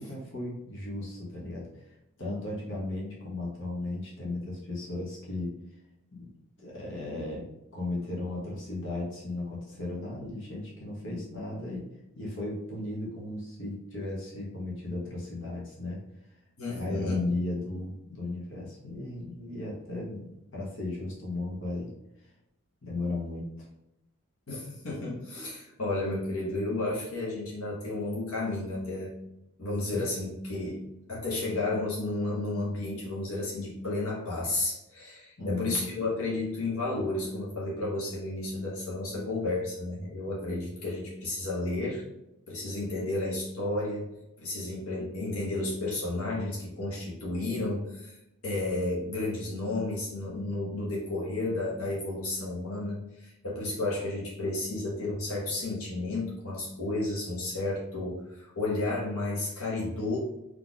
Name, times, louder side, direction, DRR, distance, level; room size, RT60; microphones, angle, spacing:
voice 1, 0.0-5.5 6.1-6.3 6.6-7.5 7.7-11.9 12.1-16.0 16.7-21.9 22.8-23.7 29.9-30.1 35.4-35.9, left 2 dB, 65° left, -4 dB, 1.3 m, -35 dB
voice 2, 16.6-17.2 24.5-29.1 29.6-30.8 31.1-42.0 42.5-44.1 44.4-48.2 48.4-60.2, left 2 dB, 80° left, -5 dB, 1.3 m, -32 dB
4.1 x 3.3 x 3.6 m, 0.89 s
head